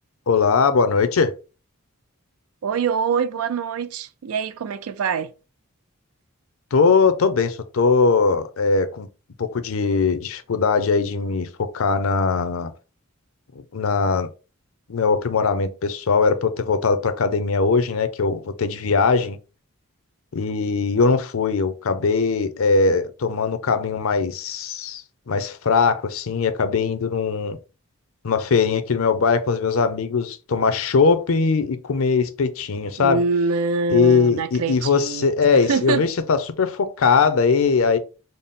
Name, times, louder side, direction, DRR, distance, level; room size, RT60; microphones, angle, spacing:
voice 1, 0.3-1.3 6.7-9.1 9.4-12.7 13.7-14.3 14.9-19.4 20.3-27.6 28.2-33.2 33.9-38.0, left 4 dB, 70° left, 0.5 m, -20 dB
voice 2, 2.6-5.3 33.0-36.0, right 5 dB, 85° right, 0.4 m, -24 dB
4.0 x 2.0 x 3.6 m
head